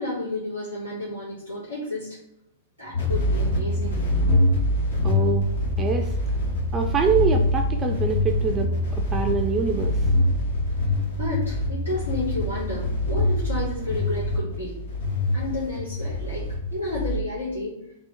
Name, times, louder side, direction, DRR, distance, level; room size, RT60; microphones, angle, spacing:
voice 1, 0.0-2.2 2.8-4.0 11.2-14.8 15.3-17.8, left 2 dB, 90° left, -9 dB, 1.2 m, -31 dB
sound 1, 2.9-17.2, left 1 dB, 65° left, 1.0 m, -24 dB
voice 2, 5.0-5.5 5.8-6.1 6.7-10.0, right 5 dB, 20° right, 3 dB, 0.4 m, -25 dB
3.4 x 2.4 x 4.3 m, 0.79 s
figure-of-eight pair, 100°, 0 cm